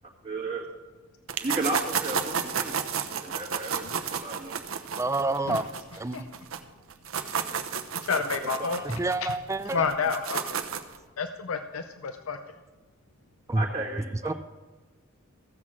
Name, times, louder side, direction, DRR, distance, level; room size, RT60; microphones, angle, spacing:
voice 1, 0.2-0.7 1.4-2.7 3.2-3.8 4.1-4.7 8.1-8.2 8.6-8.7 13.5-14.3, right 2 dB, 30° right, -5 dB, 1.5 m, -34 dB
sound 1, 1.3-6.6 6.9-11.0, right 7 dB, 75° right, 0.8 m, -32 dB
voice 2, 5.0-5.7 6.0-6.3 8.8-9.8 13.5-13.6 14.2-14.3, right 2 dB, 15° right, 11 dB, 0.5 m, -28 dB
voice 3, 8.0-9.3 9.7-10.6 11.2-12.4, left 5 dB, 80° left, 8 dB, 0.6 m, -30 dB
14.5 x 6.2 x 7.4 m, 1.3 s
head